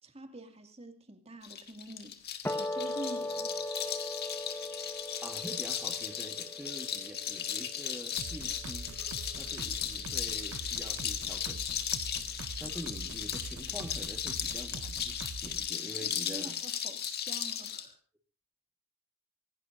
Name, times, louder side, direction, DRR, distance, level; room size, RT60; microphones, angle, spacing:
voice 1, 0.0-2.2 2.5-3.5 16.0-18.0, right 1 dB, 30° right, 5 dB, 2.3 m, -46 dB
sound 1, 1.4-17.8, left 9 dB, 45° left, 1.9 m, -36 dB
sound 2, 2.5-9.0, left 1 dB, 10° left, 1.3 m, -39 dB
voice 2, 5.2-8.9 9.4-11.6 12.6-15.1 15.4-16.5, equal, 10° right, 2 dB, 1.5 m, -45 dB
sound 3, 8.2-15.7, right 3 dB, 70° right, 0.8 m, -44 dB
25.0 x 17.5 x 2.6 m, 0.34 s
head